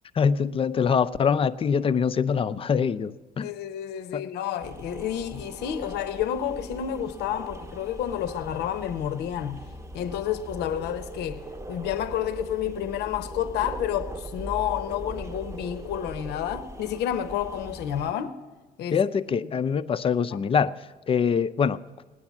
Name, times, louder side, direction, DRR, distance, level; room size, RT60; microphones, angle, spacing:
voice 1, 0.1-3.5 4.1-4.2 18.9-20.7 21.1-21.8, left 6 dB, 35° left, 0.5 m, -24 dB
voice 2, 3.4-9.7 9.9-18.4 18.8-19.0, left 10 dB, 80° left, 0.8 m, -30 dB
sound 1, 4.6-18.1, right 1 dB, 15° right, 0.8 m, -40 dB
18.5 x 9.9 x 7.2 m
cardioid pair, 110°, 17 cm